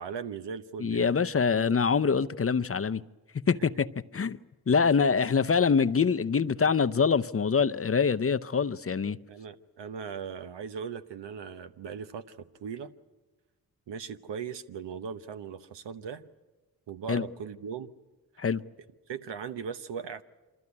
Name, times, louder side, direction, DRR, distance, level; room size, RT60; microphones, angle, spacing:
voice 1, 0.0-1.1 9.3-12.9 13.9-16.2 16.9-17.9 19.1-20.2, right 6 dB, 80° right, 1.0 m, -38 dB
voice 2, 0.8-3.0 3.5-3.9 4.1-4.4 4.7-9.2 17.1-17.2 18.4-18.6, left 5 dB, 35° left, 0.7 m, -25 dB
25.0 x 14.0 x 9.7 m
cardioid pair, 45°, 42 cm